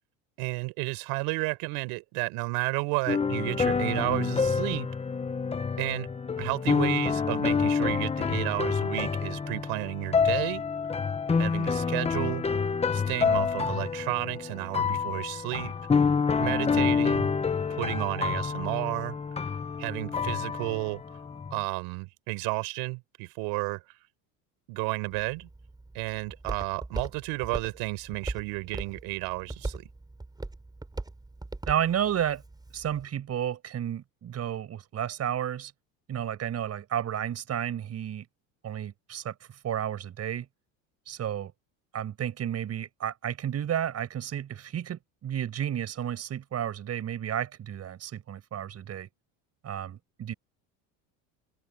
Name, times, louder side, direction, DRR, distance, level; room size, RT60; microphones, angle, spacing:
voice 1, 0.4-4.9 5.8-6.1 6.4-10.6 11.4-12.4 12.9-15.7 16.4-17.3 17.7-19.2 19.8-21.0 21.5-23.8 24.7-25.5 25.9-29.9, right 27 dB, 75° right, 6.1 m, -32 dB
sound 1, 3.1-21.6, left 5 dB, 15° left, 1.1 m, -28 dB
Walk footsteps, 25.1-33.0, right 2 dB, 10° right, 5.2 m, -40 dB
voice 2, 31.7-32.4 32.7-35.7 36.1-38.3 38.6-40.4 41.0-41.5 41.9-49.1 49.6-50.3, right 10 dB, 40° right, 6.8 m, -32 dB
cardioid pair, 125°, 39 cm